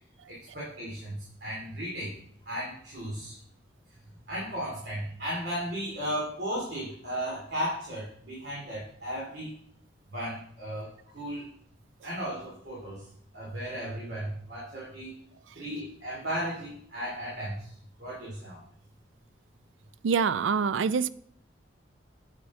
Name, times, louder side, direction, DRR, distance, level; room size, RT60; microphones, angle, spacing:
voice 1, 0.3-2.2 2.4-3.4 4.3-9.5 10.1-10.9 11.1-11.5 12.0-13.1 13.3-15.1 15.5-18.6, equal, 60° right, 2.7 m, -35 dB
voice 2, 20.0-21.1, right 6 dB, 85° right, 0.4 m, -25 dB
8.3 x 8.3 x 3.6 m
head